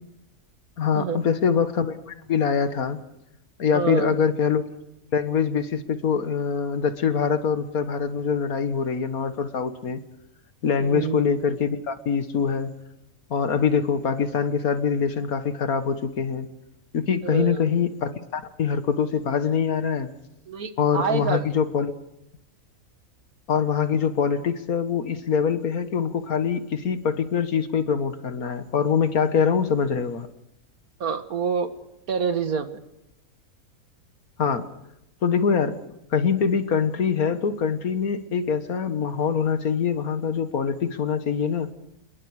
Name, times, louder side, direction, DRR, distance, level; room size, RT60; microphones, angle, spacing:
voice 1, 0.8-3.0 3.6-4.6 5.1-10.0 10.6-12.7 13.3-16.5 16.9-20.1 20.8-21.9 23.5-30.3 34.4-34.7 35.2-41.7, left 6 dB, 75° left, 10 dB, 1.9 m, -24 dB
voice 2, 3.7-4.2 10.8-11.2 17.2-17.7 20.5-21.5 31.0-31.7 32.1-32.8, right 6 dB, 80° right, 9 dB, 2.0 m, -26 dB
27.5 x 22.0 x 4.9 m, 0.85 s
omnidirectional pair, 1.5 m